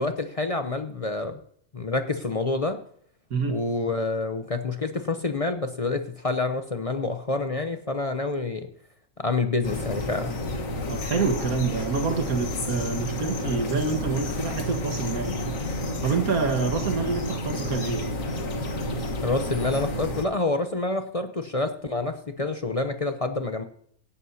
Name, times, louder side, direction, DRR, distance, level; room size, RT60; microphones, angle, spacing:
voice 1, 0.0-1.4 1.7-2.8 3.5-8.7 9.2-10.4 19.2-23.6, left 3 dB, 35° left, 7 dB, 0.5 m, -27 dB
voice 2, 3.3-3.6 10.9-15.4 16.0-18.0, right 4 dB, 75° right, 5 dB, 1.9 m, -27 dB
sound 1, 9.6-20.2, left 1 dB, 65° left, 1.8 m, -30 dB
17.0 x 11.5 x 2.8 m, 0.65 s
omnidirectional pair, 1.6 m